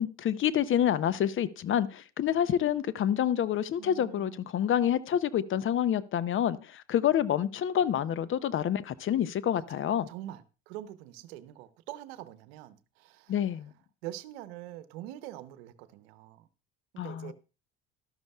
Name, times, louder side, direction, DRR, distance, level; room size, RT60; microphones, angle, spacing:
voice 1, 0.0-10.1 13.3-13.7 17.0-17.3, left 10 dB, 40° left, 0.7 m, -28 dB
voice 2, 3.8-4.4 9.5-13.3 14.0-16.5 17.0-17.3, right 14 dB, 75° right, 0.9 m, -44 dB
12.5 x 12.0 x 2.3 m
hypercardioid pair, 70°, 31 cm